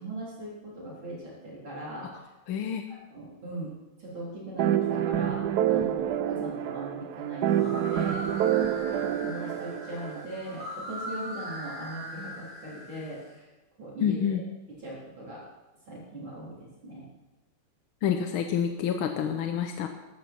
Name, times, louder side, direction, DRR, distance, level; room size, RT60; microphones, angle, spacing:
voice 1, 0.0-2.1 2.9-3.7 4.0-5.4 5.7-8.2 8.9-13.4 13.8-14.4 14.8-15.4 15.9-16.6 16.8-17.0, right 1 dB, 60° right, -7 dB, 4.5 m, -39 dB
voice 2, 2.5-2.8 14.0-14.4 18.0-19.9, left 8 dB, 75° left, 5 dB, 1.7 m, -28 dB
sound 1, 4.6-10.3, right 10 dB, 75° right, 0.9 m, -27 dB
sound 2, 7.5-13.3, right 1 dB, 40° right, 5.1 m, -40 dB
14.5 x 12.5 x 4.4 m, 1.0 s
omnidirectional pair, 2.4 m